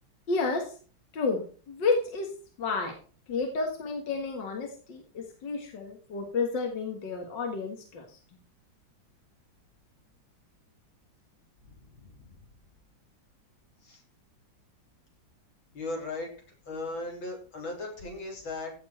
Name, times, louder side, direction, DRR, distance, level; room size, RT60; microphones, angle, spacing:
voice 1, 0.3-0.8 1.1-1.4 1.7-2.3 2.6-2.9 3.3-8.1, left 4 dB, 65° left, 3 dB, 2.4 m, -30 dB
voice 2, 11.6-12.3 13.8-14.0 15.7-16.3 16.7-18.7, left 2 dB, 85° left, 1 dB, 4.1 m, -37 dB
15.5 x 7.2 x 4.3 m, 0.39 s
omnidirectional pair, 2.1 m